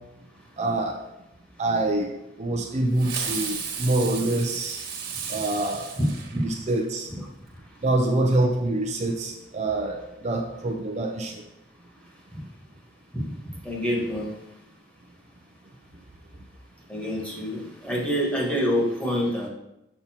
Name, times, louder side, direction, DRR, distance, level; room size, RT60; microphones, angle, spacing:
voice 1, 0.6-1.0 1.6-2.1 2.4-4.8 5.3-5.9 6.3-7.1 7.8-11.4, right 2 dB, 40° right, 1 dB, 0.7 m, -25 dB
Fireworks, 3.0-6.8, right 6 dB, 60° right, 1.6 m, -34 dB
voice 2, 6.0-6.4 7.1-7.2 12.3-12.4 13.1-13.3 13.6-14.3 16.9-19.5, equal, 5° left, -3 dB, 1.8 m, -27 dB
7.1 x 5.5 x 4.5 m, 0.90 s
head